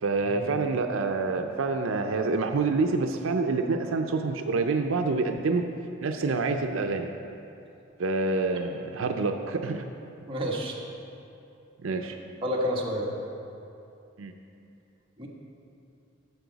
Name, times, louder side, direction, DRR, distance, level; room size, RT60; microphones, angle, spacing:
voice 1, 0.0-5.6 6.0-7.1 8.0-9.8 11.8-12.2 14.2-14.3, right 3 dB, 85° right, 5 dB, 0.5 m, -27 dB
voice 2, 10.3-10.8 12.4-13.1 15.2-15.3, equal, 25° right, -3 dB, 1.3 m, -29 dB
12.5 x 7.1 x 4.0 m, 2.7 s
head